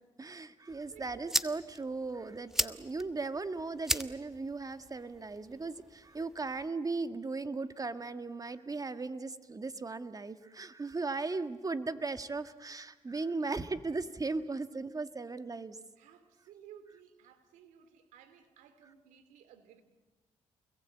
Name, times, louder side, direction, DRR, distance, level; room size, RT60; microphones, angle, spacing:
voice 1, 0.2-15.8, right 3 dB, 30° right, 10 dB, 1.8 m, -37 dB
sound 1, 0.7-6.7, equal, 5° right, 1.3 m, -38 dB
voice 2, 0.8-1.4 16.0-19.8, right 9 dB, 90° right, 11 dB, 2.6 m, -56 dB
29.0 x 21.5 x 8.6 m, 1.2 s
supercardioid pair, 65°, 12 cm